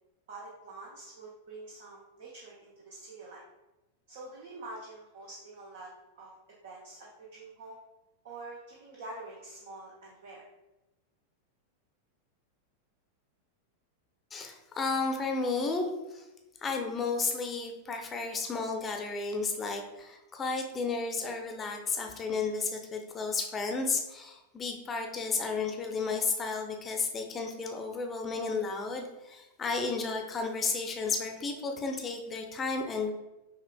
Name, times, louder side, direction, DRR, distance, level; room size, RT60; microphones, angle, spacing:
voice 1, 0.3-3.4 4.1-5.9 6.2-6.3 6.6-7.8 8.2-10.5, right 2 dB, 55° right, -3 dB, 0.7 m, -46 dB
voice 2, 14.3-16.2 16.6-33.1, left 4 dB, 20° left, 3 dB, 0.6 m, -33 dB
5.7 x 2.4 x 2.3 m, 1.0 s
figure-of-eight pair, 90°, 0 cm